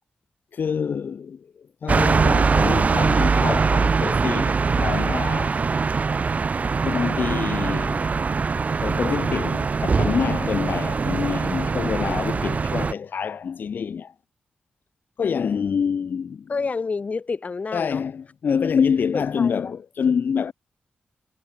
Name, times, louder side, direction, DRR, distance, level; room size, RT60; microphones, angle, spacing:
voice 1, 0.5-1.5 1.8-5.7 6.8-8.1 8.8-14.1 15.2-16.5 17.7-20.5, left 6 dB, 70° left, 5.4 m, -26 dB
sound 1, 1.9-12.9, right 4 dB, 45° right, 1.1 m, -22 dB
voice 2, 16.5-18.0 19.1-19.6, left 4 dB, 45° left, 6.5 m, -29 dB
cardioid pair, 80°, 3 cm